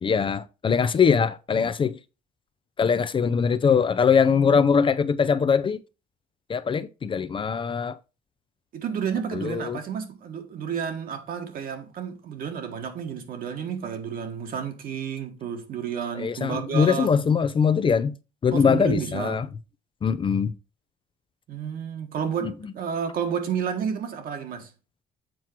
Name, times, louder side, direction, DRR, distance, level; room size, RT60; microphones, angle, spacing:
voice 1, 0.0-2.0 2.8-5.8 6.5-8.0 9.3-9.8 16.2-18.1 18.4-19.5 20.0-20.5 22.4-22.5, left 6 dB, 30° left, 0.5 m, -22 dB
voice 2, 8.7-17.1 18.5-19.5 21.5-24.7, right 7 dB, 60° right, 1.6 m, -31 dB
7.6 x 4.6 x 4.5 m
cardioid pair, 110°, 17 cm